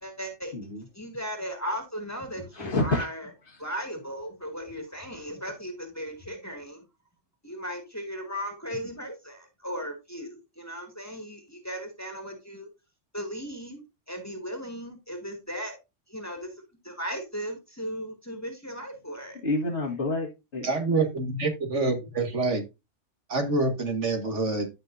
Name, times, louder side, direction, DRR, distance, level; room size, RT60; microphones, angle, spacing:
voice 1, 0.0-3.3 3.6-6.8 7.4-12.7 13.1-15.8 16.1-16.5 16.8-19.4, equal, 15° left, 2.0 m, -37 dB
voice 2, 0.5-0.9 2.5-3.1 3.5-3.6 19.4-20.7, left 2 dB, 65° left, 2.1 m, -28 dB
voice 3, 20.6-22.6 23.3-24.7, right 3 dB, 70° right, 2.0 m, -26 dB
13.0 x 5.8 x 2.6 m
omnidirectional pair, 1.3 m